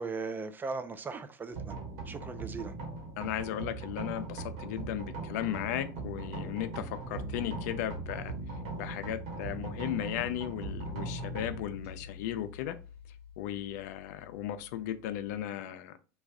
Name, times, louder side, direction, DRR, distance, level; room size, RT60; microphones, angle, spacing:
voice 1, 0.0-1.7 2.1-2.7, right 4 dB, 20° right, 0.4 m, -38 dB
sound 1, 1.5-15.4, right 2 dB, 70° right, 1.5 m, -40 dB
voice 2, 3.2-8.3 8.8-12.8 13.4-16.0, left 12 dB, 70° left, 0.4 m, -36 dB
3.2 x 2.4 x 3.5 m
supercardioid pair, 105°, 9 cm